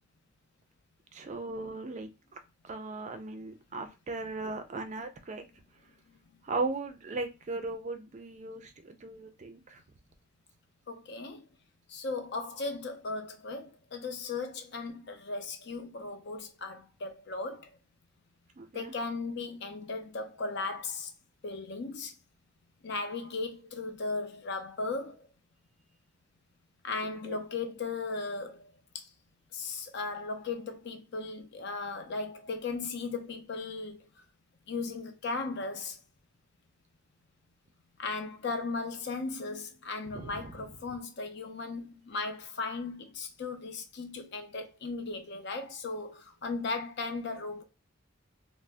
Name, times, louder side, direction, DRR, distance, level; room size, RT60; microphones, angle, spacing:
voice 1, 1.1-5.4 6.4-9.8 18.6-18.9 27.0-27.4 40.0-40.7, right 3 dB, 35° right, 0.4 m, -38 dB
voice 2, 10.9-11.4 11.9-17.7 18.7-21.1 21.4-22.1 22.8-25.2 26.8-28.6 28.9-29.1 29.5-34.0 34.7-36.0 38.0-47.6, left 3 dB, 55° left, 0.5 m, -37 dB
2.5 x 2.0 x 3.3 m
head